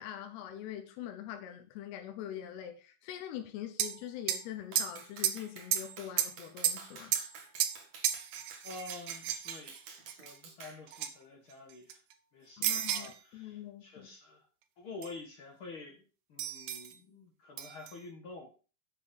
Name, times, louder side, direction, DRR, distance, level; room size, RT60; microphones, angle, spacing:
voice 1, 0.0-7.1 12.6-14.1, left 11 dB, 85° left, 3.0 m, -43 dB
sound 1, 3.8-4.0 4.3-4.4 4.8-5.4 5.7-6.4 6.6-7.8 8.0-10.3 10.9-11.1 11.5-12.1 12.6-13.2 15.0-15.1 16.4-16.9 17.6-17.9, right 10 dB, 75° right, 2.8 m, -33 dB
Clapping, 4.7-10.8, right 5 dB, 50° right, 2.4 m, -51 dB
voice 2, 8.6-9.7 10.2-12.0 12.3-14.5 14.8-16.0 16.3-18.5, left 3 dB, 55° left, 1.5 m, -48 dB
7.8 x 7.4 x 5.3 m
omnidirectional pair, 4.6 m